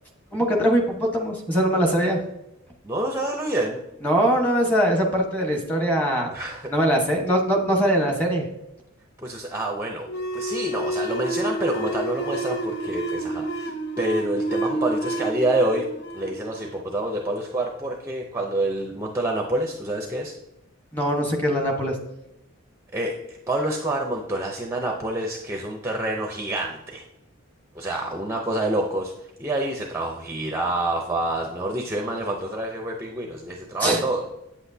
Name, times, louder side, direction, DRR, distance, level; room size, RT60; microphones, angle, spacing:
voice 1, 0.3-2.2 4.0-6.3 6.7-8.5 20.9-22.0 33.8-34.0, equal, 10° left, 1 dB, 1.2 m, -22 dB
voice 2, 2.8-3.8 6.3-6.7 9.2-15.9 16.1-20.3 22.9-27.0 27.7-29.1 29.4-34.3, right 1 dB, 10° right, 1 dB, 0.6 m, -27 dB
sound 1, 10.1-17.3, right 1 dB, 50° left, 0.7 m, -29 dB
8.5 x 8.0 x 2.7 m, 0.90 s
head